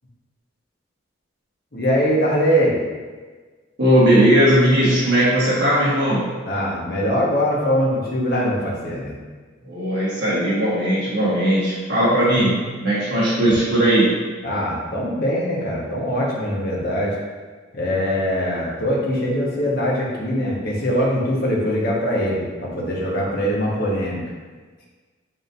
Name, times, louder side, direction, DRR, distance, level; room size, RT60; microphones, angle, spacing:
voice 1, 1.7-2.8 6.5-9.1 14.4-17.2 17.7-24.2, equal, 50° left, -5 dB, 1.4 m, -22 dB
voice 2, 3.8-6.4 9.6-14.2, right 1 dB, 55° right, -9 dB, 1.5 m, -18 dB
9.2 x 3.8 x 2.7 m, 1.4 s
head